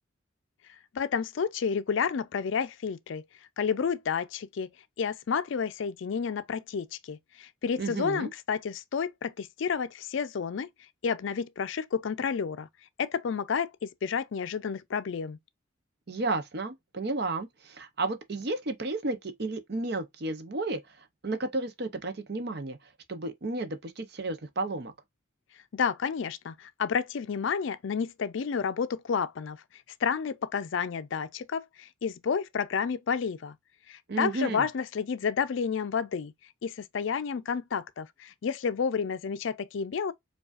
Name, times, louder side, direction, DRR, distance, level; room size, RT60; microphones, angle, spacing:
voice 1, 0.9-3.2 3.6-4.7 5.0-10.7 11.0-12.7 13.0-15.4 25.7-29.6 30.0-33.5 33.9-36.3 36.6-40.1, left 6 dB, 65° left, 0.4 m, -30 dB
voice 2, 7.8-8.3 16.1-20.8 21.2-22.8 23.1-24.9 34.1-34.7, right 2 dB, 50° right, 0.6 m, -32 dB
4.8 x 2.3 x 2.4 m
head